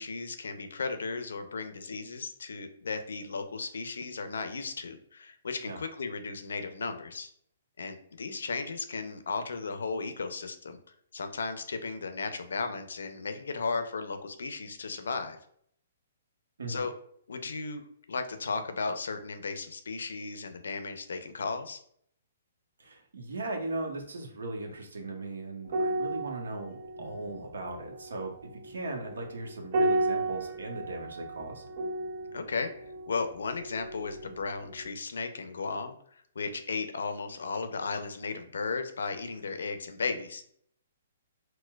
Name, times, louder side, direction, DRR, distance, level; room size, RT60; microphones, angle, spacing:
voice 1, 0.0-7.3 7.8-10.8 11.1-15.4 16.7-16.9 17.3-21.8 32.3-32.7 33.1-40.4, left 4 dB, 80° left, 8 dB, 0.4 m, -35 dB
voice 2, 22.8-31.6, right 2 dB, 85° right, 2 dB, 0.9 m, -38 dB
sound 1, 25.7-34.4 34.7-34.9, right 2 dB, 50° right, 0.5 m, -34 dB
4.3 x 2.1 x 2.3 m, 0.66 s
hypercardioid pair, 140°, 0 cm